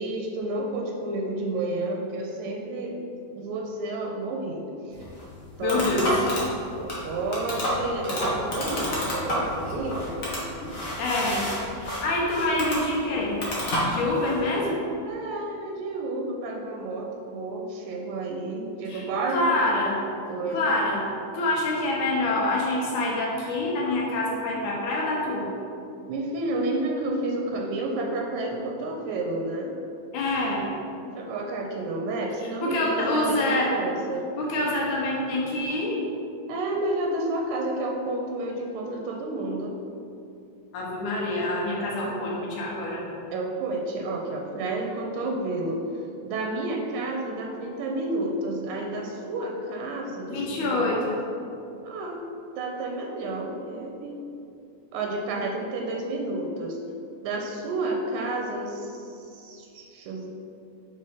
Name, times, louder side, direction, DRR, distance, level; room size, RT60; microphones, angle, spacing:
voice 1, 0.0-3.0 3.3-5.0 5.6-6.3 6.8-10.2 15.0-19.5 20.3-20.7 26.1-29.7 31.2-34.3 36.5-39.7 43.3-45.8 46.2-51.0 51.8-52.2 52.6-54.2 54.9-56.8 57.2-60.3, right 2 dB, 85° right, 0 dB, 2.0 m, -30 dB
sound 1, 4.9-14.4, equal, 50° left, 1.0 m, -30 dB
voice 2, 5.6-6.2 11.0-11.5 11.8-13.4 13.9-14.8 18.9-19.0 19.3-20.0 20.5-21.0 21.3-25.5 30.1-30.7 32.4-33.7 34.4-36.0 40.7-43.0 50.3-51.2, left 2 dB, 85° left, -3 dB, 2.4 m, -26 dB
5.4 x 4.0 x 5.0 m, 2.7 s
omnidirectional pair, 3.4 m